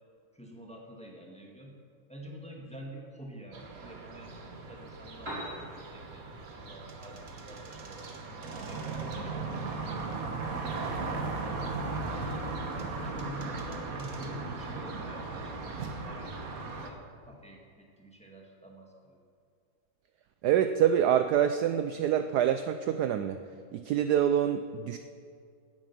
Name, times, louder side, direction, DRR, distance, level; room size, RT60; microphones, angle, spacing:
voice 1, 0.3-1.8 2.1-8.2 8.5-11.7 12.1-19.2, equal, 5° left, -1 dB, 1.7 m, -48 dB
sound 1, 3.5-16.9, right 3 dB, 50° right, 1.6 m, -37 dB
Piano, 5.0-13.0, equal, 30° right, 4.0 m, -49 dB
voice 2, 20.4-23.4 23.7-25.0, right 9 dB, 70° right, 9 dB, 1.0 m, -26 dB
17.5 x 8.9 x 6.0 m, 2.2 s
omnidirectional pair, 2.0 m